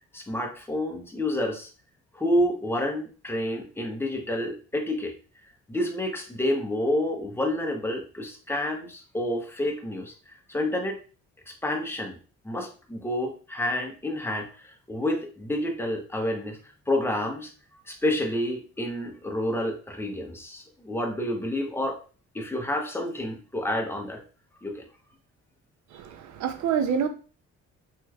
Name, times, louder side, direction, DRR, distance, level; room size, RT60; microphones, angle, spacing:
voice 1, 0.1-1.7 2.1-5.2 5.7-10.1 10.5-11.0 11.5-12.2 12.4-16.6 16.9-17.5 17.9-22.0 22.3-24.2 24.6-24.8, left 1 dB, 10° left, 0.7 m, -29 dB
voice 2, 25.9-27.1, right 7 dB, 70° right, 0.5 m, -27 dB
3.2 x 3.1 x 2.3 m
cardioid pair, 90°, 30 cm